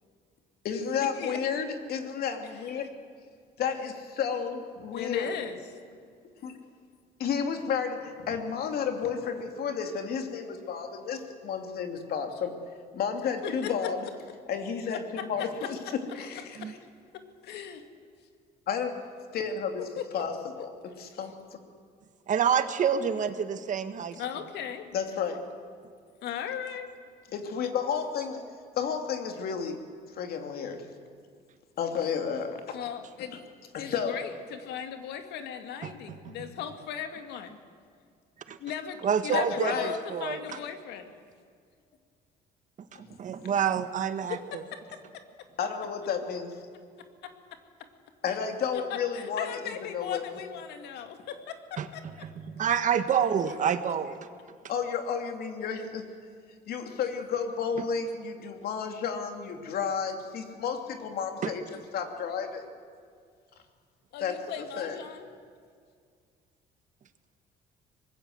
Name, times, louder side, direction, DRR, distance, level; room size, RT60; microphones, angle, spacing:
voice 1, 0.6-2.9 3.6-5.4 6.4-6.6 7.2-12.5 12.9-14.1 14.5-16.8 18.7-18.9 19.3-21.3 24.9-25.4 27.3-28.4 28.7-29.8 30.1-30.9 31.8-32.8 33.7-34.2 39.3-39.9 40.5-40.6 42.9-43.2 45.6-46.6 48.2-50.5 54.7-56.1 56.7-61.6 61.9-62.6 64.2-65.0, left 6 dB, 65° left, 5 dB, 2.9 m, -32 dB
voice 2, 4.9-5.6 13.4-13.7 14.9-15.5 16.6-16.7 17.1-17.8 20.0-20.2 24.2-24.9 26.2-26.9 32.7-33.3 33.8-37.6 38.6-41.1 44.3-44.6 44.9-45.0 48.7-52.0 55.8-55.9 64.1-65.3, left 8 dB, 80° left, 7 dB, 2.2 m, -37 dB
voice 3, 22.3-24.2 35.8-36.3 38.5-38.6 39.0-40.4 42.9-44.6 51.8-54.2 61.4-61.5, right 8 dB, 50° right, 9 dB, 1.6 m, -28 dB
24.5 x 20.5 x 7.9 m, 2.1 s
cardioid pair, 110°, 17 cm